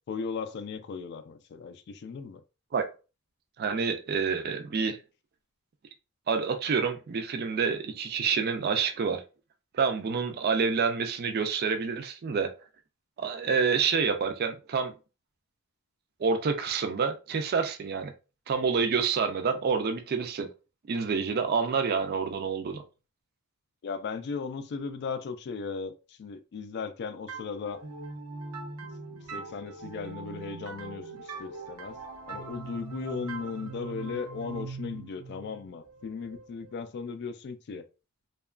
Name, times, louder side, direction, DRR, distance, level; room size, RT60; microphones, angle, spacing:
voice 1, 0.1-2.4 23.8-27.8 29.3-32.0 32.3-37.8, left 5 dB, 50° left, 0.3 m, -37 dB
voice 2, 3.6-5.0 6.3-9.2 9.7-12.5 13.2-14.9 16.2-18.1 18.5-20.5 20.9-22.8, right 5 dB, 45° right, 0.4 m, -28 dB
sound 1, 27.3-36.8, right 4 dB, 85° right, 0.7 m, -42 dB
2.8 x 2.3 x 2.3 m
head